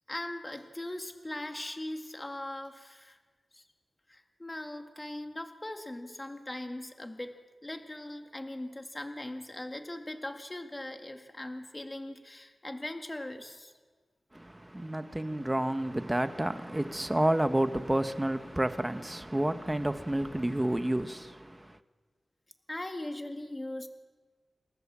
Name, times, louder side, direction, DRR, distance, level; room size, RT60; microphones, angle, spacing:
voice 1, 0.1-3.2 3.5-3.6 4.1-13.7 22.7-23.9, left 1 dB, 25° left, 2.0 m, -40 dB
voice 2, 14.3-21.8, right 1 dB, 15° right, 1.3 m, -30 dB
27.5 x 14.0 x 7.5 m
cardioid pair, 60°, 0 cm